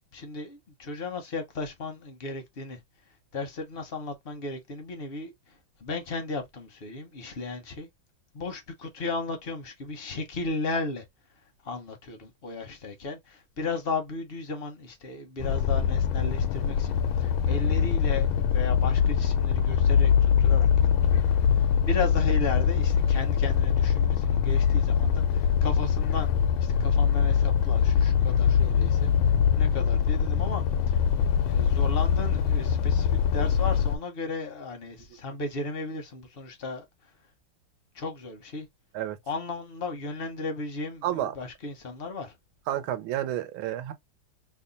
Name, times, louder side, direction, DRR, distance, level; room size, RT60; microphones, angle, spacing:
voice 1, 0.1-2.8 3.3-5.3 5.8-7.9 8.3-11.0 11.6-26.3 26.6-29.1 29.6-31.0 31.5-36.8 37.9-38.7 39.3-42.3, left 3 dB, 45° left, 0.7 m, -35 dB
sound 1, 15.4-34.0, left 7 dB, 90° left, 1.4 m, -23 dB
voice 2, 42.7-43.9, right 12 dB, 85° right, 1.5 m, -30 dB
3.5 x 2.2 x 3.9 m
omnidirectional pair, 2.2 m